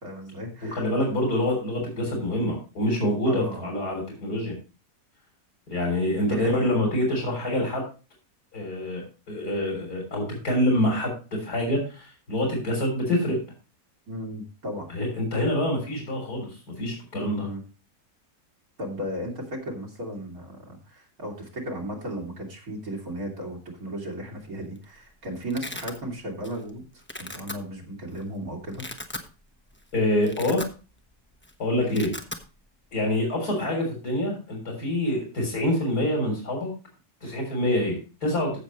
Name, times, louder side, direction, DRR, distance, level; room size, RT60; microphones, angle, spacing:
voice 1, 0.0-0.8 3.3-3.7 6.2-6.7 14.1-14.9 17.2-17.6 18.8-28.9 31.8-32.1, equal, 65° right, -1 dB, 3.3 m, -35 dB
voice 2, 0.7-4.6 5.7-7.8 8.5-13.4 14.9-17.5 29.9-30.7 31.6-32.1 32.9-36.7 37.2-38.6, left 1 dB, 75° left, -1 dB, 3.9 m, -26 dB
Domestic sounds home sounds, 24.5-24.8 25.1-26.0 26.4-26.7 27.0-27.5 28.2-28.3 28.6-29.3 29.7-29.8 30.1-31.1 31.3-31.5 31.8-32.4, left 1 dB, 10° left, 0.9 m, -37 dB
15.0 x 6.8 x 3.0 m, 0.33 s
omnidirectional pair, 1.7 m